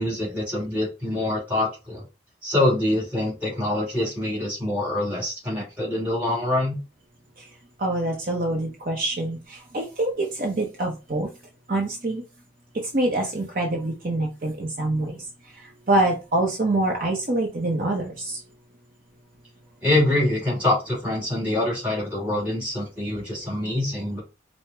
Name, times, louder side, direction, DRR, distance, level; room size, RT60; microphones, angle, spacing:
voice 1, 0.0-2.0 2.4-6.8 19.8-24.2, left 1 dB, 10° right, -4 dB, 1.9 m, -25 dB
voice 2, 7.8-11.3 11.7-12.2 12.9-15.2 15.9-18.4, right 2 dB, 50° right, 1 dB, 0.7 m, -25 dB
4.8 x 2.1 x 3.3 m, 0.29 s
head